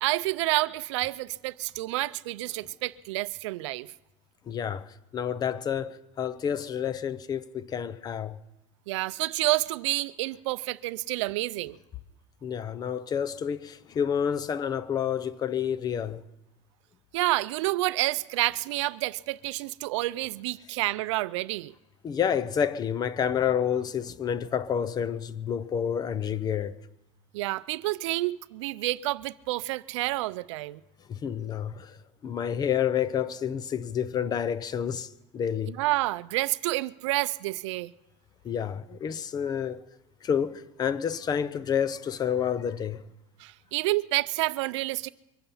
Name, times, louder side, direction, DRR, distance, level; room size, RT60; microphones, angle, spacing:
voice 1, 0.0-3.9 8.9-11.8 17.1-21.7 27.3-30.8 35.7-37.9 43.4-45.1, right 19 dB, 85° right, 0.5 m, -29 dB
voice 2, 4.5-8.4 12.4-16.2 22.0-26.8 31.1-35.7 38.4-39.8 40.2-43.1, left 8 dB, 25° left, 0.6 m, -29 dB
23.5 x 9.9 x 5.5 m
supercardioid pair, 135°, 15 cm